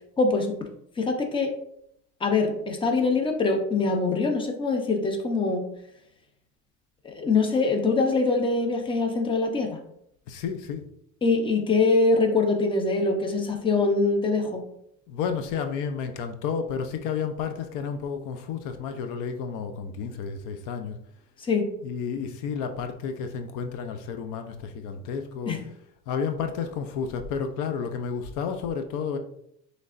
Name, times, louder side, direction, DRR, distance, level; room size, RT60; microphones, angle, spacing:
voice 1, 0.2-0.6 1.0-1.5 2.2-5.6 7.0-9.8 11.2-14.6 21.4-21.7 25.5-25.6, left 3 dB, 15° left, 3 dB, 0.7 m, -23 dB
voice 2, 10.3-10.8 15.1-21.0 21.8-25.6 26.1-29.2, left 6 dB, 65° left, 8 dB, 0.6 m, -31 dB
6.2 x 3.3 x 2.5 m, 0.73 s
supercardioid pair, 120°, 34 cm